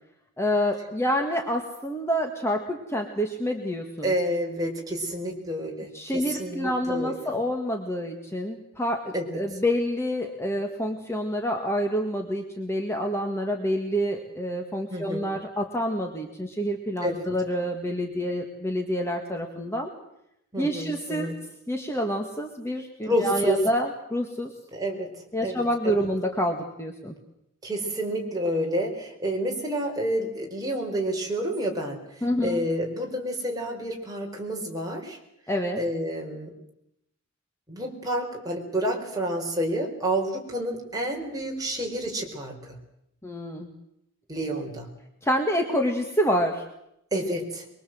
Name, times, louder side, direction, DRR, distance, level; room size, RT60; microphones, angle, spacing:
voice 1, 0.4-4.2 5.9-19.9 20.6-21.3 21.7-24.5 25.3-27.1 32.2-32.6 35.5-35.8 43.2-43.7 45.2-46.6, equal, 10° left, 3 dB, 1.8 m, -27 dB
voice 2, 4.0-7.1 9.1-9.4 14.9-15.3 17.0-17.3 20.5-21.3 23.1-23.6 24.7-25.1 25.4-26.1 27.6-35.2 35.8-36.5 37.7-42.8 44.3-44.9 47.1-47.6, right 1 dB, 15° right, 0 dB, 4.5 m, -29 dB
23.0 x 23.0 x 7.8 m, 0.80 s
head